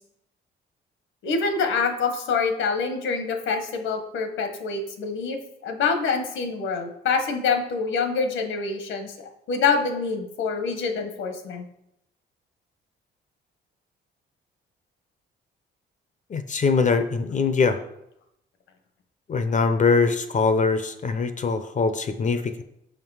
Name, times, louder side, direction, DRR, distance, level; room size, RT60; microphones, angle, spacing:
voice 1, 1.2-9.1 9.5-11.7, left 5 dB, 80° left, 6 dB, 1.1 m, -26 dB
voice 2, 16.3-17.8 19.3-22.6, left 4 dB, 40° left, 10 dB, 0.6 m, -22 dB
5.7 x 5.0 x 4.7 m, 0.80 s
cardioid pair, 90°, 20 cm